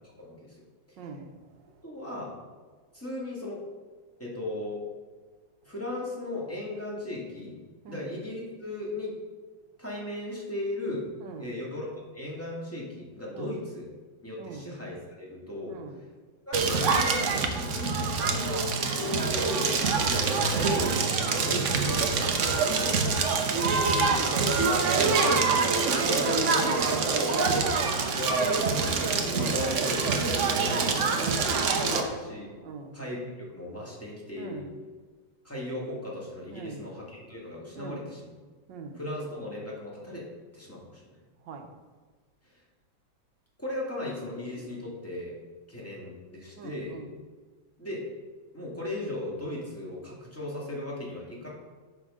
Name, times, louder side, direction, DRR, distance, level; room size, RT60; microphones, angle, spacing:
voice 1, 0.2-0.6 1.8-2.3 2.9-3.6 4.2-4.8 5.6-7.5 7.9-9.1 9.8-11.1 11.4-11.9 12.1-13.9 14.2-15.8 16.5-19.8 20.7-20.9 21.4-22.1 22.6-22.8 23.2-23.7 25.3-25.5 25.8-27.7 28.1-28.5 29.2-32.5 32.9-34.6 35.4-38.3 39.0-40.3 40.5-41.0 43.6-45.3 45.7-47.0 47.8-48.0 48.5-51.5, left 1 dB, 10° left, -5 dB, 1.9 m, -37 dB
voice 2, 1.0-1.7 7.8-8.1 11.2-11.6 13.3-13.6 14.4-14.7 15.7-16.0 19.9-20.3 22.3-22.7 23.8-24.6 26.6-26.8 30.6-31.2 31.9-32.2 32.6-33.0 34.4-34.7 36.5-36.9 37.7-38.2 38.7-39.0 41.4-41.7 44.9-45.0 46.6-47.1, right 4 dB, 85° right, 5 dB, 1.6 m, -42 dB
Crackle, 16.5-32.0, right 4 dB, 55° right, 0.9 m, -25 dB
9.1 x 6.4 x 3.7 m, 1.4 s
omnidirectional pair, 1.9 m